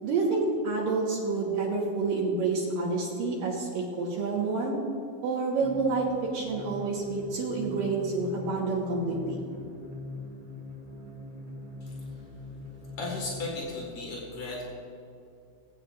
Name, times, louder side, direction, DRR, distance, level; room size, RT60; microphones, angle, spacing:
voice 1, 0.0-4.8 5.2-6.1 6.3-9.4, right 3 dB, 70° right, -4 dB, 2.2 m, -28 dB
sound 1, 5.6-13.6, left 2 dB, 45° right, 2.6 m, -42 dB
voice 2, 13.0-14.6, left 2 dB, 75° left, -3 dB, 1.3 m, -35 dB
21.0 x 8.7 x 2.5 m, 2.6 s
omnidirectional pair, 5.9 m